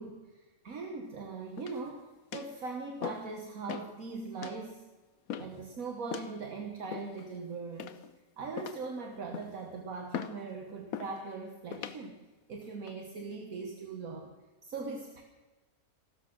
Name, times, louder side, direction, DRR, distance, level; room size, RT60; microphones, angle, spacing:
voice 1, 0.0-4.9 5.4-8.0 8.4-12.2 12.5-14.4 14.6-15.2, right 4 dB, 65° right, 4 dB, 1.7 m, -40 dB
sound 1, 1.6-1.9 2.3-2.6 3.0-3.3 3.7-3.9 4.4-4.6 5.3-5.6 6.1-6.3 6.9-7.3 7.8-8.2 8.6-8.9 9.3-9.6 10.1-10.4 10.9-11.2 11.7-12.0 12.6-12.9, left 8 dB, 70° left, 1.2 m, -40 dB
15.5 x 12.5 x 6.1 m, 1.2 s
omnidirectional pair, 1.6 m